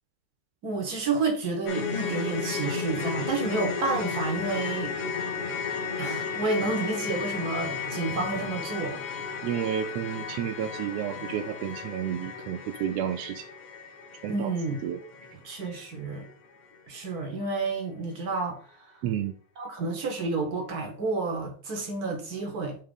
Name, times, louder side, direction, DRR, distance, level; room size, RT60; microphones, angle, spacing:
voice 1, 0.6-4.9 6.0-9.0 14.3-14.9 15.4-16.2 16.9-19.0 19.6-22.8, right 3 dB, 60° right, 1.0 m, -30 dB
sound 1, 1.7-15.9 16.1-16.3 16.7-16.8, left 5 dB, 75° left, 2.8 m, -34 dB
voice 2, 9.4-13.4 14.2-14.5 14.8-15.0 19.0-19.3, right 10 dB, 80° right, 1.6 m, -31 dB
6.6 x 3.0 x 5.3 m
omnidirectional pair, 3.4 m